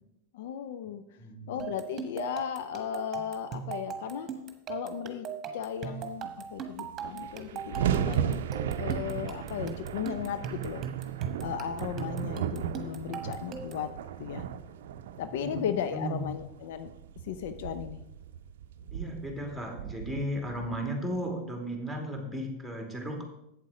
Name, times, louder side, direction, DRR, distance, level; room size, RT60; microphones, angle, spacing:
voice 1, 0.3-1.0 1.5-4.3 4.7-5.3 5.5-8.4 8.7-10.8 11.4-13.9 14.2-14.4 15.2-16.9 17.2-18.0, left 9 dB, 70° left, 11 dB, 0.6 m, -36 dB
voice 2, 1.1-1.6 15.3-16.3 18.9-23.2, equal, 5° left, 1 dB, 2.7 m, -35 dB
sound 1, 1.6-13.9, right 6 dB, 35° right, 1.3 m, -40 dB
sound 2, 6.6-6.7 6.8-21.2, right 9 dB, 75° right, 0.5 m, -36 dB
8.3 x 7.5 x 4.9 m, 0.84 s
hypercardioid pair, 95°, 0 cm